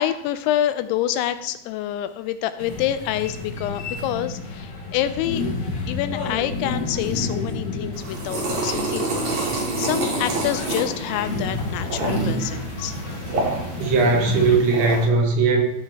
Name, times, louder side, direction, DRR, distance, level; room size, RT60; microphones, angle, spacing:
voice 1, 0.0-5.4 5.9-9.4 9.8-13.0, left 12 dB, 85° left, 11 dB, 2.8 m, -27 dB
sound 1, 2.6-14.6, left 2 dB, 70° left, 1.3 m, -30 dB
sound 2, 7.9-15.1, right 2 dB, 50° right, 2.6 m, -28 dB
voice 2, 13.8-15.6, right 4 dB, 75° right, 2 dB, 3.6 m, -19 dB
14.5 x 7.8 x 2.9 m, 0.78 s
omnidirectional pair, 5.4 m